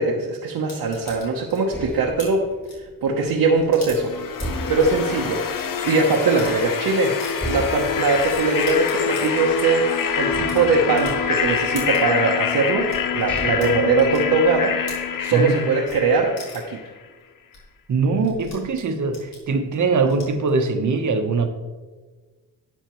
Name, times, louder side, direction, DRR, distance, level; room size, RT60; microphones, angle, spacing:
voice 1, 0.0-2.5 3.0-4.1 4.7-5.4 5.8-7.2 7.5-14.7 15.2-16.8, right 4 dB, 80° right, -1 dB, 1.0 m, -21 dB
sound 1, 0.7-5.6 6.1-6.6 7.2-7.3 7.8-7.9 8.2-15.5 15.8-16.0 16.4-16.8 17.2-17.3 17.5-17.6 17.8-20.5, left 2 dB, 90° left, 3.1 m, -42 dB
sound 2, 1.0-3.9 4.4-6.3 6.7-6.8 7.4-9.7 10.3-11.9 12.6-12.7 13.1-14.9, right 1 dB, 5° left, 2.2 m, -37 dB
sound 3, 4.0-16.9, left 7 dB, 65° left, 0.8 m, -25 dB
voice 2, 17.9-21.5, right 4 dB, 55° right, 7 dB, 1.0 m, -22 dB
11.5 x 8.0 x 3.1 m, 1.4 s
cardioid pair, 115°, 36 cm